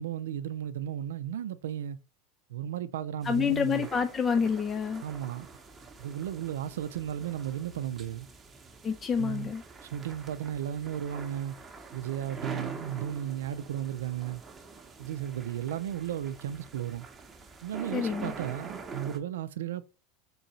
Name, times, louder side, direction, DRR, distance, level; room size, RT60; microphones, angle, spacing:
voice 1, 0.0-2.0 2.5-3.9 5.0-5.5 6.0-8.3 9.1-9.5 9.8-11.6 11.9-14.4 15.0-17.1 17.6-19.8, right 10 dB, 85° right, 0.4 m, -34 dB
voice 2, 3.2-5.0 8.8-9.6 17.9-18.3, left 6 dB, 25° left, 0.3 m, -28 dB
sound 1, 3.2-19.2, right 4 dB, 20° right, 0.8 m, -45 dB
3.7 x 2.6 x 4.3 m
supercardioid pair, 110°, 0 cm